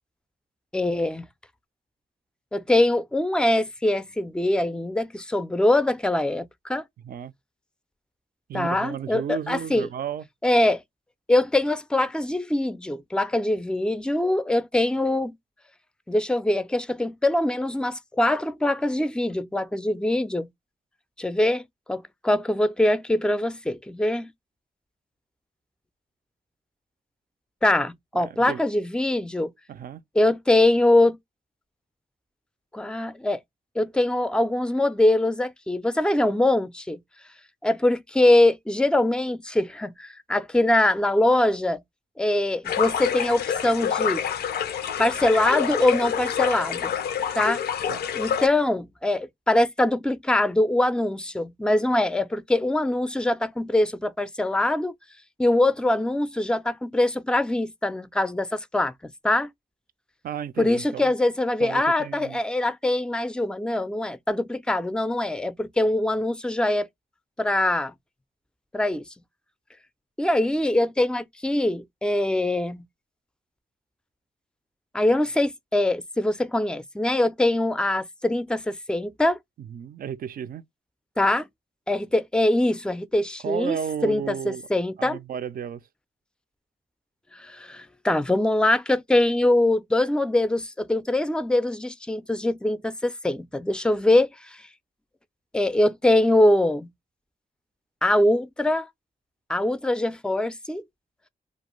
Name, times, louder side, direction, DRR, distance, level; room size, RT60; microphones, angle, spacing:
voice 1, 0.7-1.2 2.5-6.8 8.5-9.9 10.4-10.8 11.3-15.3 16.1-20.5 21.2-21.6 21.9-24.3 27.6-29.5 30.2-31.2 32.7-33.4 33.8-37.0 37.6-41.8 42.2-44.2 45.0-47.0 47.4-47.6 48.1-54.9 55.4-58.9 59.2-59.5 60.6-66.9 67.4-67.9 68.7-69.0 70.2-72.8 74.9-79.4 81.2-81.5 81.9-83.8 84.0-85.2 87.3-94.6 95.5-96.9 98.0-98.9 99.5-100.8, left 1 dB, 5° left, 0.4 m, -23 dB
voice 2, 8.5-10.3 28.2-28.7 29.7-30.0 47.9-48.1 60.2-61.1 61.6-62.4 79.6-80.6 83.4-84.7 85.0-85.8, right 9 dB, 65° right, 0.4 m, -33 dB
sound 1, 42.6-48.5, left 8 dB, 90° left, 0.4 m, -27 dB
2.5 x 2.2 x 2.9 m
cardioid pair, 65°, 16 cm